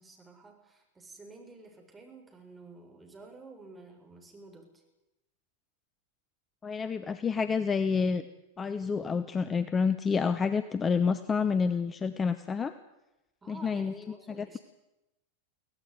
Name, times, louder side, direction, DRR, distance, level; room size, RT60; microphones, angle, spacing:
voice 1, 0.0-4.8 13.4-14.6, right 3 dB, 15° right, 2 dB, 6.8 m, -51 dB
voice 2, 6.6-8.2 8.6-12.7 13.5-14.6, left 5 dB, 20° left, 12 dB, 1.0 m, -29 dB
24.0 x 17.5 x 9.6 m, 0.93 s
figure-of-eight pair, 90°, 0 cm